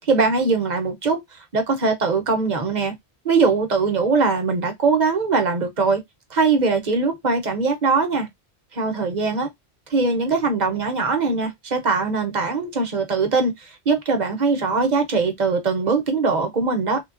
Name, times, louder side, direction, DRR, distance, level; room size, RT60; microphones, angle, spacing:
voice 1, 0.1-1.2 1.5-2.9 3.2-6.0 6.3-8.3 8.7-9.5 9.9-17.0, right 4 dB, 45° right, 0.8 m, -21 dB
3.3 x 2.2 x 2.4 m
omnidirectional pair, 1.1 m